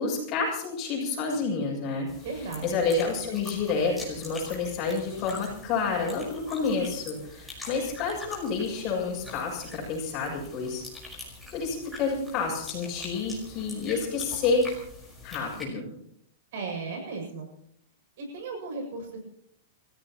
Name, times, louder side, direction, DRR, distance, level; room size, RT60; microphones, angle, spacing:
voice 1, 0.0-10.8 11.5-14.7 15.2-15.9, left 4 dB, 30° left, -2 dB, 7.4 m, -29 dB
sound 1, 2.1-15.6, left 2 dB, ahead, 5.0 m, -44 dB
voice 2, 2.2-2.9 16.5-17.5 18.2-19.2, right 3 dB, 65° right, 2 dB, 7.3 m, -36 dB
29.0 x 15.5 x 3.1 m, 0.69 s
supercardioid pair, 160°, 0 cm